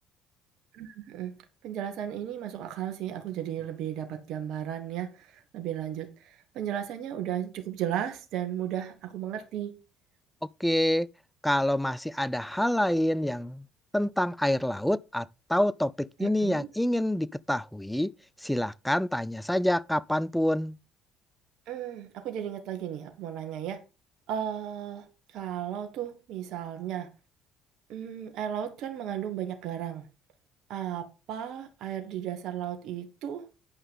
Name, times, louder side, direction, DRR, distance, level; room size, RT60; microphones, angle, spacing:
voice 1, 0.7-1.4 1.6-9.8 16.2-16.7 21.7-23.8 24.3-27.1 27.9-30.1 30.7-33.5, right 10 dB, 65° right, 1.6 m, -35 dB
voice 2, 10.6-11.1 11.4-13.7 13.9-18.1 18.4-20.8, left 1 dB, 5° left, 0.5 m, -27 dB
9.6 x 5.5 x 5.5 m
hypercardioid pair, 60°, 0 cm